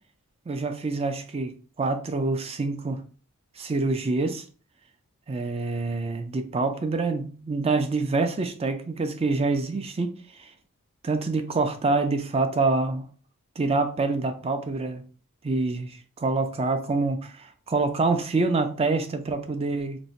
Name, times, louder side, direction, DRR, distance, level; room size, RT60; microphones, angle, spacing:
voice 1, 0.5-1.5 1.8-3.0 3.6-4.4 5.3-10.1 10.4-10.5 11.0-13.1 13.6-15.0 15.4-20.0, right 3 dB, 25° right, 0.4 m, -26 dB
2.6 x 2.1 x 4.0 m
head